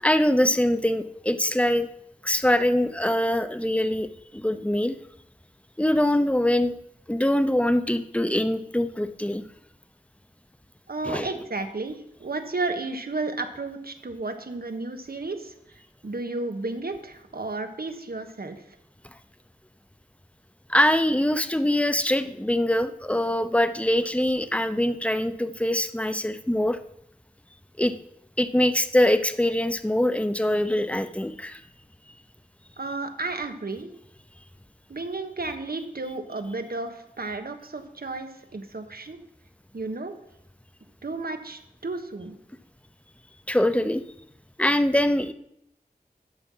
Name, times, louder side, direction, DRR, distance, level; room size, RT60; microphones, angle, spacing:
voice 1, 0.0-1.9 2.2-4.1 4.3-5.0 5.8-6.7 7.1-9.4 11.0-11.3 20.7-26.8 27.8-27.9 28.4-31.6 43.5-44.0 44.6-45.3, left 1 dB, 10° left, 11 dB, 0.8 m, -23 dB
voice 2, 10.9-18.6 32.8-33.9 34.9-39.2 39.7-40.1 41.0-42.4, right 3 dB, 75° right, 7 dB, 1.3 m, -33 dB
11.5 x 7.4 x 5.6 m, 0.79 s
wide cardioid pair, 50°, 16 cm